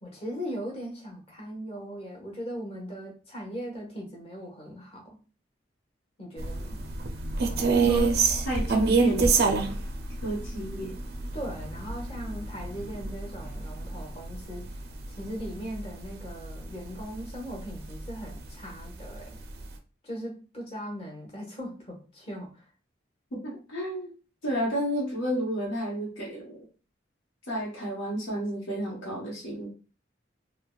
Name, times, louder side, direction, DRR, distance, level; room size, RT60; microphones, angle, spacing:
voice 1, 0.0-5.2 6.2-6.8 11.3-14.8 15.1-19.4 20.0-22.7, equal, 30° left, -1 dB, 0.9 m, -39 dB
sound 1, 6.4-16.8 17.1-17.3 17.8-18.5 18.9-19.0 19.3-19.7, right 4 dB, 55° right, 0.4 m, -27 dB
voice 2, 7.7-8.1 8.4-9.3 9.7-9.8 10.2-10.9 23.3-24.1 24.4-26.6 27.5-29.7, equal, 90° left, -6 dB, 1.0 m, -31 dB
3.3 x 2.1 x 2.3 m, 0.35 s
head